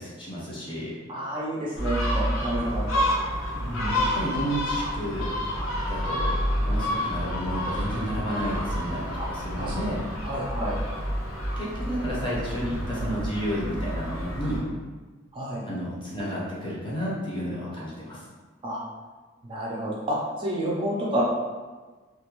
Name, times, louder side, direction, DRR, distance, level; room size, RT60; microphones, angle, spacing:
voice 1, 0.0-0.9 3.5-5.3 5.9-6.3 6.6-10.0 11.6-14.6 15.6-18.2, equal, 25° left, -6 dB, 0.6 m, -31 dB
voice 2, 1.1-3.0 9.2-9.7 10.2-10.8 15.3-15.6 18.6-18.8 19.4-21.2, right 1 dB, 25° right, -5 dB, 0.4 m, -30 dB
Gull seagull, 1.8-14.6, equal, 90° left, 0.6 m, -29 dB
2.3 x 2.2 x 2.9 m, 1.3 s
head